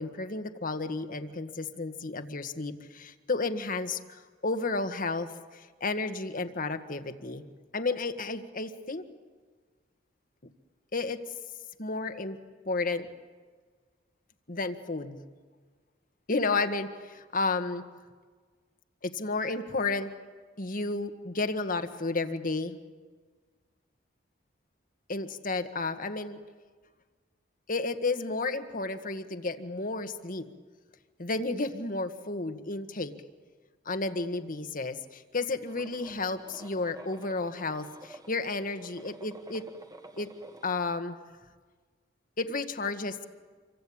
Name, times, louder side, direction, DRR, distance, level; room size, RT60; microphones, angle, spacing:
voice 1, 0.0-7.4 7.7-9.0 10.9-11.2 11.8-12.4 12.7-13.1 14.5-15.2 16.3-17.8 19.0-20.1 20.6-22.8 25.1-26.4 27.7-30.5 31.2-33.1 33.9-39.6 40.2-40.3 40.6-41.2 42.4-43.2, left 3 dB, 45° left, 8 dB, 1.7 m, -32 dB
sound 1, 35.7-40.8, right 1 dB, 20° right, 1.4 m, -50 dB
28.0 x 24.0 x 8.8 m, 1.5 s
head